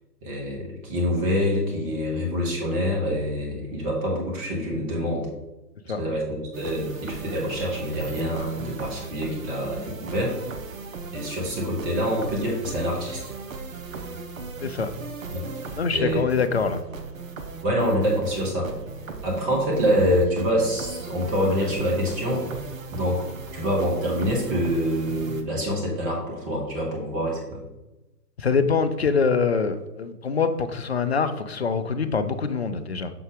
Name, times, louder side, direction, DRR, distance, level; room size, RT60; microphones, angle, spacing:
voice 1, 0.2-5.3 6.0-10.4 11.1-13.2 15.3-15.4 15.9-16.4 17.6-18.7 19.2-22.5 22.9-23.3 23.5-27.6, equal, 20° right, -2 dB, 1.5 m, -26 dB
sound 1, 6.5-25.4, right 4 dB, 55° right, 0.8 m, -37 dB
voice 2, 15.8-16.8 28.4-33.1, left 5 dB, 45° left, 10 dB, 0.4 m, -24 dB
6.6 x 3.9 x 3.8 m, 1.0 s
figure-of-eight pair, 125°, 49 cm